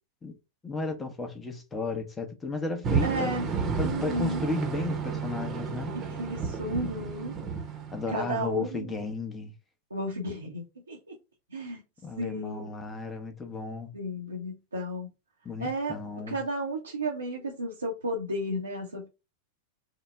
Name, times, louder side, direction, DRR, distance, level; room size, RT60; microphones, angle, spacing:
voice 1, 0.6-3.4 3.8-6.0 7.9-9.5 12.0-13.9 15.4-16.4, left 3 dB, 15° left, 0.8 m, -34 dB
sound 1, 2.8-8.5, right 5 dB, 30° right, 0.8 m, -32 dB
voice 2, 3.0-3.5 3.8-4.4 5.9-7.4 8.1-8.9 9.9-11.1 11.5-11.8 12.2-12.7 13.9-15.1 15.6-16.0 16.3-19.1, right 1 dB, 75° right, 0.7 m, -33 dB
3.8 x 2.1 x 3.3 m
figure-of-eight pair, 90°, 0 cm